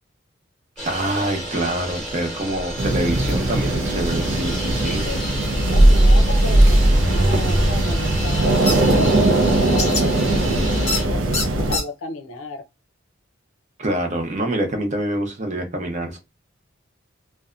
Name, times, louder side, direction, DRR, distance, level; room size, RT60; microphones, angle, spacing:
sound 1, 0.8-11.0, equal, 5° left, 1.0 m, -30 dB
voice 1, 0.8-5.1 13.8-16.2, right 1 dB, 35° right, 0.7 m, -25 dB
sound 2, 2.8-11.8, right 1 dB, 70° right, 0.5 m, -18 dB
voice 2, 5.5-12.6, left 2 dB, 80° left, 0.6 m, -35 dB
sound 3, 8.7-8.8 9.8-10.0 10.9-11.0 11.3-11.8, left 3 dB, 35° left, 0.7 m, -23 dB
2.7 x 2.2 x 2.3 m
head